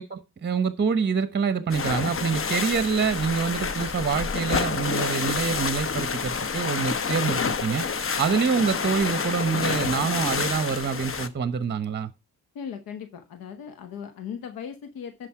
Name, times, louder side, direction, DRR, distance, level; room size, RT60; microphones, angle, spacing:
voice 1, 0.0-12.1, right 6 dB, 30° right, 0.9 m, -26 dB
sound 1, 1.7-11.3, left 5 dB, 40° left, 0.9 m, -28 dB
voice 2, 12.5-15.3, left 7 dB, 85° left, 1.1 m, -38 dB
11.5 x 5.2 x 4.8 m
cardioid pair, 65°, 34 cm